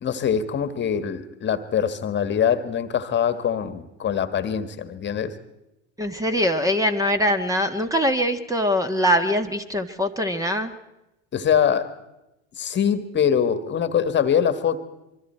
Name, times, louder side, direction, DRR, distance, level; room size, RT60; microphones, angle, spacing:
voice 1, 0.0-5.4 11.3-11.9 12.6-14.8, left 8 dB, 30° left, 11 dB, 1.7 m, -23 dB
voice 2, 6.0-10.7, equal, 10° right, 8 dB, 1.5 m, -22 dB
26.0 x 23.5 x 4.5 m, 0.92 s
hypercardioid pair, 85°, 34 cm